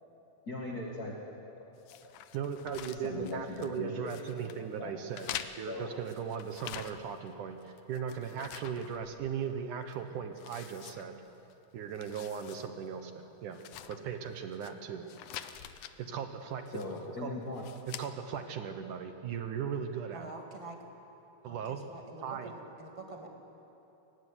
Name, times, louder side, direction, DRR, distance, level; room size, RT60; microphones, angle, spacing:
voice 1, 0.5-1.1 1.6-2.2 3.0-4.2 4.8-4.9 5.6-5.9 16.7-17.6, left 3 dB, 35° left, -1 dB, 1.7 m, -39 dB
sound 1, 1.9-3.8 4.1-4.6 5.1-7.3 7.6-9.5 9.9-10.0 10.4-11.5 11.9-12.7 13.0-13.1 13.5-14.7 15.1-15.9 16.7-17.1 17.5-18.1, left 11 dB, 70° left, 2.0 m, -46 dB
voice 2, 2.3-11.2 11.7-13.6 13.9-15.1 16.0-16.8 17.2-17.3 17.9-20.3 21.4-21.8 22.2-22.5, right 7 dB, 70° right, 7 dB, 2.4 m, -38 dB
voice 3, 20.1-20.8 21.4-23.3, right 2 dB, 10° right, 1 dB, 1.6 m, -46 dB
23.0 x 17.5 x 9.9 m, 3.0 s
omnidirectional pair, 4.2 m